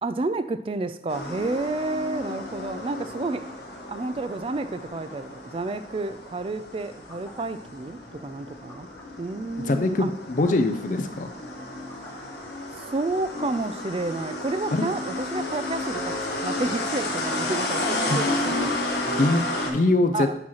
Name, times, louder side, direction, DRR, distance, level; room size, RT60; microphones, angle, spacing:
voice 1, 0.0-3.5 3.9-8.9 9.2-10.1 12.1-12.2 12.8-18.8 20.1-20.4, right 2 dB, 30° right, 12 dB, 0.3 m, -30 dB
sound 1, 1.1-19.7, left 2 dB, 70° left, 1.3 m, -32 dB
sound 2, 5.6-5.9 6.9-7.4 8.7-9.1 10.1-10.2 10.4-10.7 11.6-12.2 13.5-13.9, equal, 15° left, 1.1 m, -50 dB
voice 2, 9.7-11.3 14.7-14.9 18.1-18.2 19.1-20.3, left 2 dB, 45° left, 7 dB, 0.5 m, -23 dB
8.6 x 3.0 x 5.6 m, 0.85 s
head